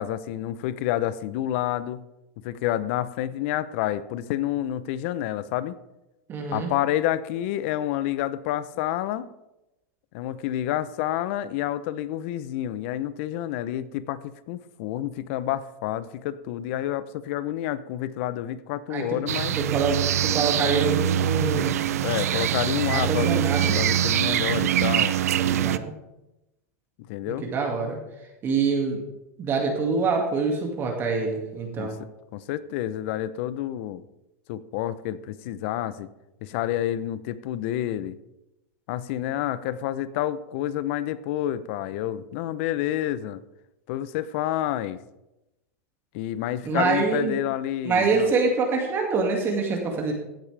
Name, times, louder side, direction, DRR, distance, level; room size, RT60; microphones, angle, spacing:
voice 1, 0.0-2.0 2.4-5.8 6.5-9.3 10.1-19.6 22.0-23.4 23.8-25.2 27.1-27.5 31.8-34.0 34.5-36.1 36.4-38.2 38.9-43.4 43.9-45.0 46.1-48.3, left 12 dB, 55° left, 16 dB, 0.7 m, -29 dB
voice 2, 6.3-6.7 18.9-19.2 19.6-21.7 22.9-23.8 25.4-25.9 27.3-28.0 28.4-29.0 29.4-32.0 46.6-47.4 47.8-50.1, right 4 dB, 30° right, 1 dB, 2.2 m, -25 dB
sound 1, 19.3-25.8, right 11 dB, 85° right, 0.5 m, -24 dB
15.5 x 8.8 x 3.4 m, 0.95 s
supercardioid pair, 135°, 8 cm